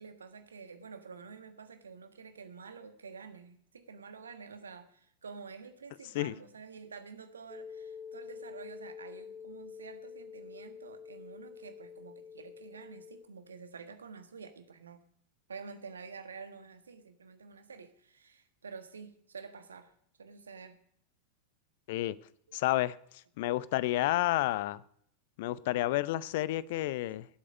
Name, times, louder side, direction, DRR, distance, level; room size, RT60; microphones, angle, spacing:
voice 1, 0.0-15.1 15.5-19.9 20.2-20.8 22.5-22.6 26.7-26.9, right 5 dB, 70° right, 9 dB, 1.4 m, -49 dB
sound 1, 7.5-13.2, left 6 dB, 15° left, 2.3 m, -47 dB
voice 2, 22.5-23.0 23.4-24.8 25.4-27.3, left 16 dB, 50° left, 19 dB, 0.5 m, -30 dB
18.0 x 8.4 x 5.4 m, 0.67 s
figure-of-eight pair, 90°, 0 cm